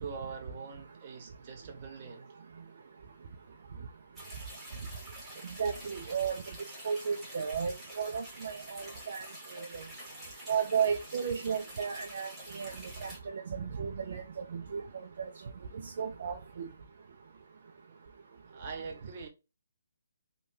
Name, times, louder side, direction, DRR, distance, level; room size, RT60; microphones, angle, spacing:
voice 1, 0.0-2.3 18.5-19.3, right 5 dB, 35° right, 0.7 m, -43 dB
sound 1, 4.2-13.2, right 1 dB, 5° right, 1.1 m, -48 dB
voice 2, 5.6-6.4 6.8-9.2 9.6-9.8 10.5-12.7 13.0-13.1 13.5-14.2 14.5-14.8 15.2-15.3 15.8-16.7, right 6 dB, 50° right, 0.3 m, -33 dB
3.1 x 2.1 x 2.6 m
figure-of-eight pair, 145°, 0 cm